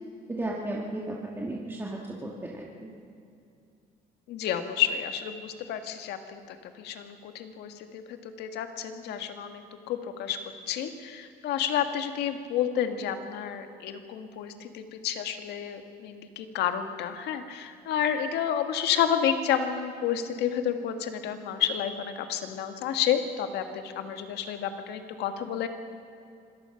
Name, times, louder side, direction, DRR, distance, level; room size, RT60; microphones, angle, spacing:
voice 1, 0.3-2.7, right 1 dB, 15° right, -3 dB, 2.3 m, -34 dB
voice 2, 4.3-10.4 10.7-25.7, left 9 dB, 80° left, 7 dB, 1.8 m, -30 dB
25.5 x 18.0 x 5.9 m, 2.6 s
cardioid pair, 110°, 17 cm